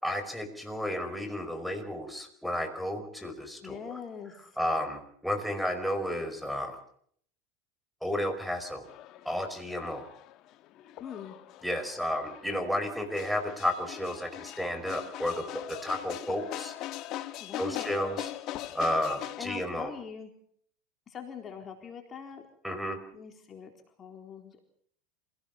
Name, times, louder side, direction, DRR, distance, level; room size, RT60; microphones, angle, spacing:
voice 1, 0.0-4.0 4.6-6.8 8.0-8.9 9.3-10.0 11.6-16.7 17.6-18.3 18.7-19.9 22.6-23.0, left 1 dB, ahead, 5 dB, 5.1 m, -32 dB
voice 2, 3.6-4.6 11.0-11.4 12.0-12.1 17.4-17.9 19.1-20.3 21.1-22.5 23.1-23.7 24.0-24.6, left 7 dB, 30° left, 4 dB, 4.0 m, -43 dB
sound 1, 8.8-19.4, left 13 dB, 50° left, 1.6 m, -41 dB
26.5 x 18.0 x 7.1 m, 0.63 s
supercardioid pair, 110°, 0 cm